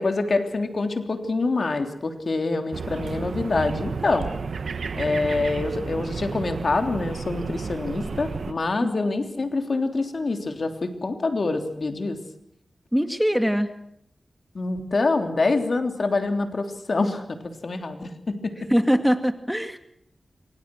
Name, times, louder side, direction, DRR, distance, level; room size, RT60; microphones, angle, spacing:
voice 1, 0.0-4.3 4.9-12.2 14.5-18.7, left 3 dB, 60° left, 6 dB, 3.4 m, -26 dB
sound 1, 2.7-8.5, right 5 dB, 75° right, 1.4 m, -32 dB
voice 2, 12.9-13.7 18.7-19.8, equal, ahead, 8 dB, 2.2 m, -22 dB
27.0 x 24.0 x 6.3 m, 0.74 s
cardioid pair, 45°, 0 cm